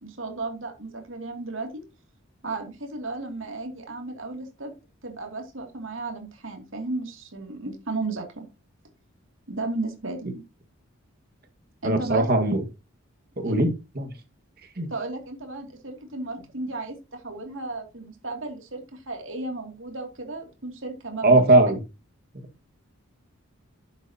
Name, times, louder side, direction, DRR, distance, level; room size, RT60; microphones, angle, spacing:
voice 1, 0.0-1.8 2.4-4.7 5.0-8.4 9.5-10.3 11.8-12.3 13.4-13.6 14.9-21.5, right 2 dB, 70° right, 3 dB, 2.6 m, -34 dB
voice 2, 11.8-12.6 13.4-13.7 14.0-14.1 14.8-14.9 21.2-21.8, right 2 dB, 45° right, 6 dB, 1.7 m, -19 dB
12.5 x 7.9 x 2.9 m, 0.27 s
head